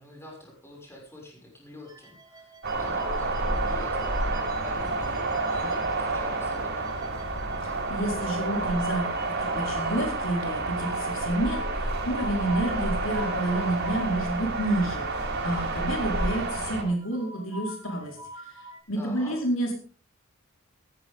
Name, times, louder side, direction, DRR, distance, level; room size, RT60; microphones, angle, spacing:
voice 1, 0.0-6.9 19.0-19.4, left 1 dB, 15° left, 0 dB, 6.4 m, -45 dB
sound 1, 1.9-6.2 6.5-18.8, equal, 20° right, 2.4 m, -46 dB
sound 2, 2.6-16.8, right 2 dB, 55° right, 5.4 m, -29 dB
voice 2, 7.6-9.1 9.4-18.2 18.4-19.7, right 1 dB, 75° left, 1 dB, 4.6 m, -29 dB
15.0 x 15.0 x 3.7 m, 0.39 s
head